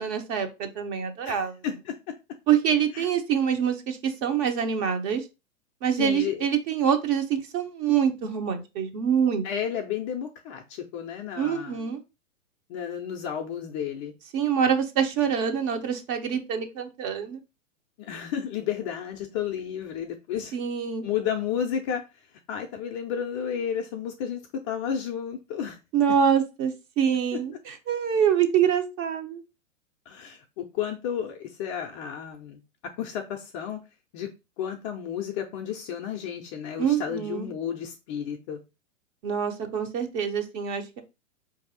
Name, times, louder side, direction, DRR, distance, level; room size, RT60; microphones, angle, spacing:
voice 1, 0.0-1.5 2.5-5.3 5.8-9.4 11.4-12.0 14.3-17.4 20.5-21.1 25.9-29.4 36.8-37.5 39.2-41.0, right 8 dB, 30° right, 6 dB, 0.7 m, -25 dB
voice 2, 1.2-2.0 2.9-3.1 6.0-6.4 9.4-11.8 12.7-14.1 18.0-20.5 21.0-22.0 22.5-25.8 30.1-32.6 33.0-33.8 34.1-34.3 34.6-38.6, left 8 dB, 25° left, 3 dB, 0.4 m, -32 dB
4.6 x 2.6 x 3.9 m, 0.27 s
hypercardioid pair, 115°, 40 cm